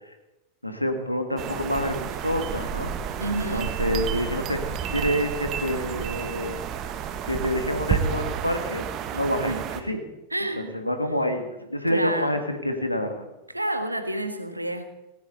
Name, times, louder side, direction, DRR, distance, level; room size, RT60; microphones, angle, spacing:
voice 1, 0.6-2.9 3.3-4.6 4.9-6.6 7.3-8.8 9.1-9.5 9.8-10.0 10.6-13.3, left 1 dB, 90° left, 6 dB, 1.9 m, -27 dB
sound 1, 1.4-9.8, right 8 dB, 40° right, 1.4 m, -30 dB
voice 2, 3.2-3.7 9.5-9.6 10.3-10.7 11.9-12.4 13.5-14.8, right 1 dB, 90° right, 9 dB, 1.4 m, -29 dB
18.0 x 17.5 x 4.1 m, 0.96 s
figure-of-eight pair, 90°, 0 cm